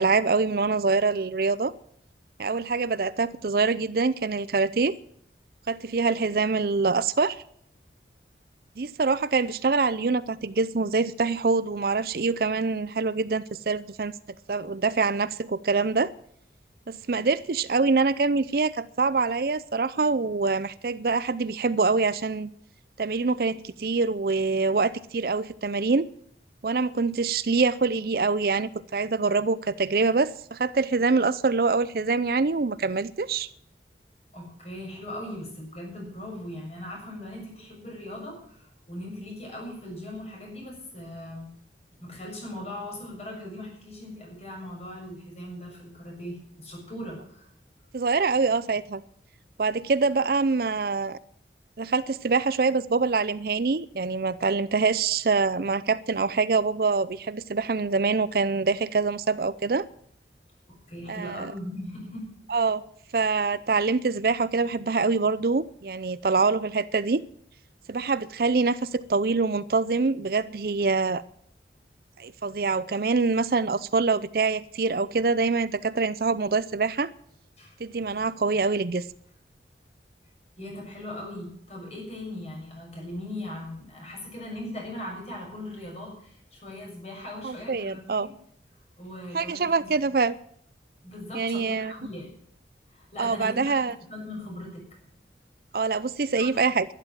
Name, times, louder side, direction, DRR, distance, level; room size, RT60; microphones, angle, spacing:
voice 1, 0.0-1.7 2.4-4.9 5.7-7.4 8.8-14.1 14.5-16.1 16.9-22.5 23.0-26.1 26.6-33.5 47.9-49.0 49.6-51.2 51.8-59.9 61.1-61.5 62.5-62.8 63.1-67.2 67.9-71.2 72.2-77.1 77.8-79.0 87.4-88.3 89.3-90.4 91.3-91.9 93.2-93.9 95.7-96.8, right 4 dB, 55° right, 0.5 m, -25 dB
voice 2, 34.3-41.5 42.0-47.5 60.7-62.3 77.6-77.7 80.6-88.3 89.0-90.0 91.0-92.3 92.9-94.8 96.4-96.6, left 1 dB, 35° left, 6.6 m, -39 dB
12.0 x 11.5 x 7.4 m
head